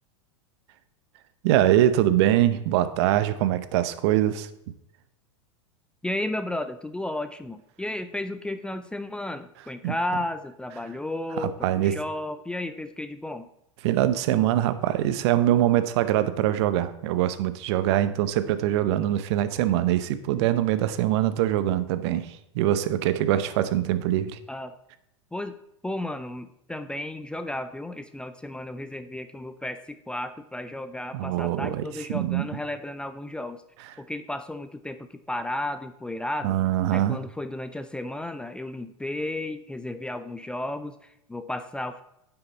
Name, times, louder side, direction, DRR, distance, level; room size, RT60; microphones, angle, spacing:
voice 1, 1.4-4.5 9.6-10.0 11.3-12.0 13.8-24.4 31.1-32.6 33.8-33.9 36.4-37.2, right 12 dB, 60° right, 13 dB, 0.8 m, -23 dB
voice 2, 6.0-13.5 24.5-24.7 25.3-25.5 25.8-29.8 30.1-33.6 34.1-36.6 36.9-40.9 41.3-42.0, left 1 dB, 5° left, 10 dB, 0.4 m, -33 dB
9.5 x 5.8 x 4.0 m, 0.82 s
hypercardioid pair, 105°, 16 cm